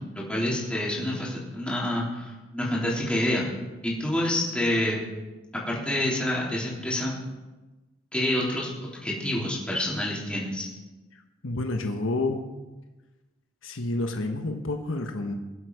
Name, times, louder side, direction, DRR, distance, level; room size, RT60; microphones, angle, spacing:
voice 1, 0.0-3.5 3.8-5.0 5.7-7.2 8.1-8.7 9.0-10.7, left 1 dB, 5° left, -5 dB, 3.5 m, -27 dB
voice 2, 11.4-12.4 13.6-15.3, left 2 dB, 70° left, 4 dB, 1.2 m, -29 dB
22.5 x 8.0 x 4.8 m, 1.1 s
head